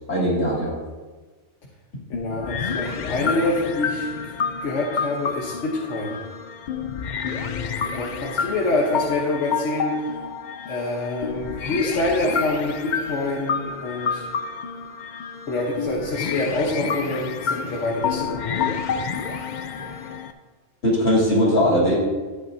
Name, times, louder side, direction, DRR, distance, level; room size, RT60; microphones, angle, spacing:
voice 1, 0.1-0.7 20.8-21.9, equal, 90° left, -6 dB, 3.6 m, -19 dB
voice 2, 2.1-4.1 4.6-6.2 7.2-10.1 10.7-14.3 15.5-18.8, left 2 dB, 70° left, -3 dB, 1.4 m, -26 dB
sound 1, 2.1-20.3, left 6 dB, 55° left, 0.5 m, -29 dB
13.5 x 8.7 x 2.7 m, 1.4 s
omnidirectional pair, 1.3 m